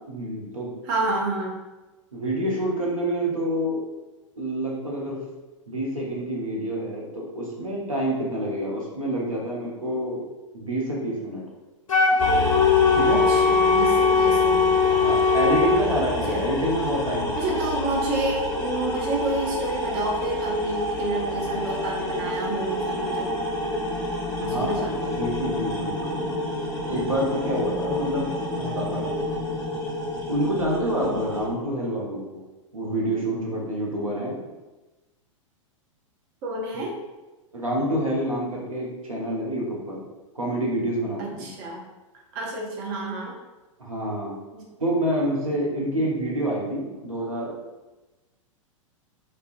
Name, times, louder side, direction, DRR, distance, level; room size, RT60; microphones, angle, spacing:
voice 1, 0.1-0.7 2.1-3.9 4.4-5.2 5.7-10.2 10.5-11.4 12.8-13.2 14.9-17.3 24.4-26.3 26.8-29.1 30.3-32.4 32.7-34.4 37.5-40.0 40.3-41.5 43.8-44.3 44.8-47.5, right 1 dB, 85° right, -3 dB, 0.7 m, -27 dB
voice 2, 0.9-1.6 13.0-14.8 16.3-16.5 17.4-23.3 24.4-25.1 36.4-37.0 41.2-41.8 42.3-43.3 44.5-44.6, right 2 dB, 40° right, -2 dB, 0.5 m, -29 dB
Wind instrument woodwind instrument, 11.9-15.8, left 5 dB, 80° left, 0.4 m, -19 dB
sound 1, 12.2-31.5, left 1 dB, 15° left, 0.7 m, -28 dB
2.3 x 2.2 x 2.4 m, 1.1 s
figure-of-eight pair, 95°, 17 cm